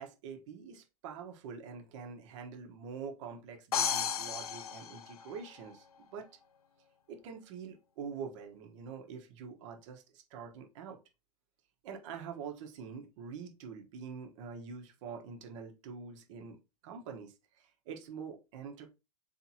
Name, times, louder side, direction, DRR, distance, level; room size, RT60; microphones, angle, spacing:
voice 1, 0.0-6.3 7.1-11.0 11.8-16.6 16.8-18.9, right 6 dB, 55° right, 1.3 m, -45 dB
sound 1, 3.7-5.7, left 8 dB, 85° left, 0.5 m, -34 dB
4.3 x 3.5 x 2.9 m
hypercardioid pair, 100°, 18 cm